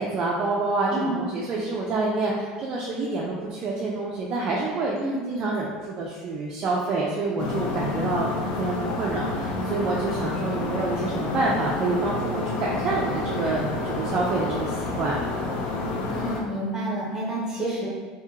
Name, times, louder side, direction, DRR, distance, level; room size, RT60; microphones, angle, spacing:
voice 1, 0.0-15.3, right 3 dB, 30° right, -4 dB, 0.4 m, -27 dB
sound 1, 7.4-16.4, left 2 dB, 50° left, 0.4 m, -29 dB
voice 2, 16.0-17.9, right 1 dB, 10° right, -5 dB, 0.8 m, -29 dB
2.8 x 2.7 x 3.6 m, 1.5 s
cardioid pair, 170°, 3 cm